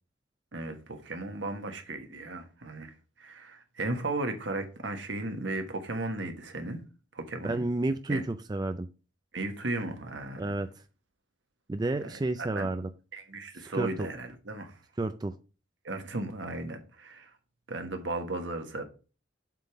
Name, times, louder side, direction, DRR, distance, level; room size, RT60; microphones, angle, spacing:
voice 1, 0.5-2.9 3.2-6.8 7.1-7.6 8.1-8.2 9.3-10.6 12.0-12.7 13.1-14.7 15.8-17.3 17.7-18.8, right 2 dB, 70° right, 1.4 m, -35 dB
voice 2, 7.4-8.9 10.4-10.7 11.7-12.9 13.6-14.1 15.0-15.3, right 2 dB, 20° right, 0.4 m, -31 dB
7.5 x 3.6 x 5.8 m
head